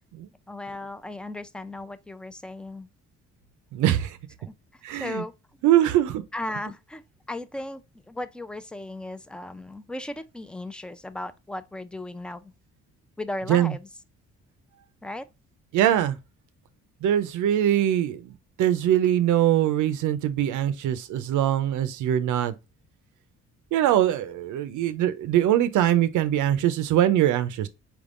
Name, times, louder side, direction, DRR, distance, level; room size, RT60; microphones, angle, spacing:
voice 1, 0.5-2.9 4.4-4.5 5.0-5.3 6.3-7.0 7.3-7.8 8.1-12.5 13.2-13.9 15.0-15.3, left 1 dB, 5° left, 0.4 m, -36 dB
voice 2, 3.7-4.2 4.8-5.2 5.6-6.2 13.5-13.7 15.7-16.2 17.0-18.3 18.6-22.5 23.7-27.7, right 11 dB, 85° right, 0.6 m, -22 dB
4.7 x 3.5 x 2.4 m
cardioid pair, 90°, 30 cm